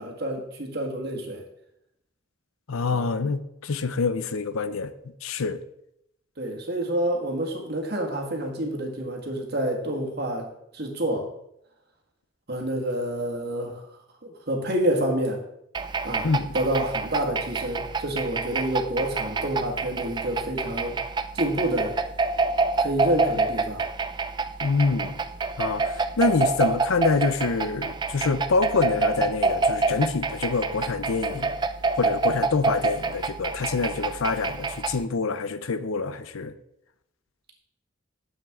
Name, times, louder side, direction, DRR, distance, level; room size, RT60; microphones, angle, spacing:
voice 1, 0.0-1.4 2.9-3.1 6.4-10.5 10.7-11.3 12.5-15.4 16.0-16.3 16.5-21.0 21.3-22.0 22.8-23.8, right 1 dB, 50° right, 1.7 m, -28 dB
voice 2, 2.7-4.9 5.2-5.6 16.2-16.5 24.6-25.2 25.6-31.6 32.0-36.5, left 4 dB, 85° left, 0.6 m, -26 dB
sound 1, 15.7-35.0, right 3 dB, 20° right, 0.3 m, -27 dB
11.0 x 7.4 x 3.6 m
head